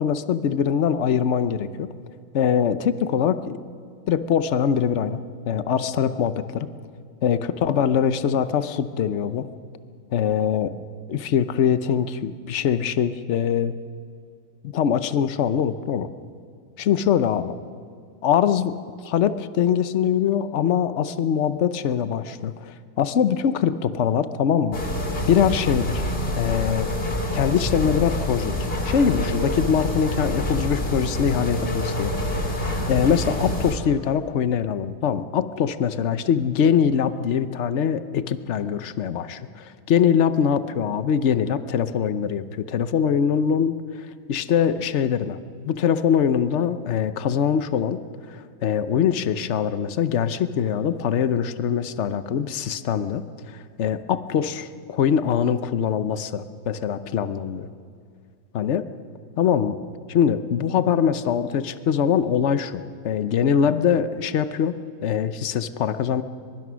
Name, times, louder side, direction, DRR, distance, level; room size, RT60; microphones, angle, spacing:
voice 1, 0.0-1.9 2.3-3.6 4.1-6.7 7.2-9.5 10.1-10.7 11.1-13.7 14.6-16.1 16.8-17.6 18.2-18.7 19.0-24.8 25.3-26.1 26.4-26.9 27.3-28.6 28.8-32.1 32.6-43.7 44.3-45.4 45.6-53.2 53.5-57.7 58.5-58.9 59.4-59.8 60.1-66.2, left 8 dB, 55° left, 12 dB, 0.9 m, -23 dB
sound 1, 24.7-33.8, left 1 dB, 30° left, 2.5 m, -26 dB
23.0 x 22.0 x 6.3 m, 2.3 s
omnidirectional pair, 1.9 m